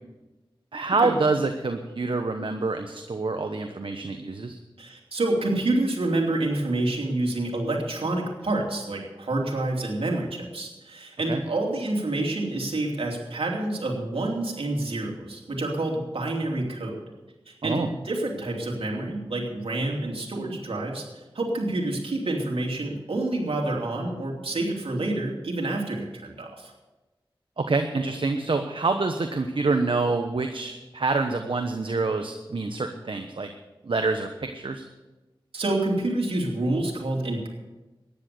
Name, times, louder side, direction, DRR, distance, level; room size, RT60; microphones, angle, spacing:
voice 1, 0.7-4.6 11.3-11.4 17.6-17.9 27.6-33.5 33.8-34.8, right 3 dB, 65° right, 6 dB, 1.0 m, -26 dB
voice 2, 4.8-17.0 17.5-21.0 21.3-26.7 35.5-37.5, right 2 dB, 90° right, 0 dB, 2.9 m, -28 dB
14.0 x 10.5 x 6.7 m, 1.1 s
cardioid pair, 45°, 9 cm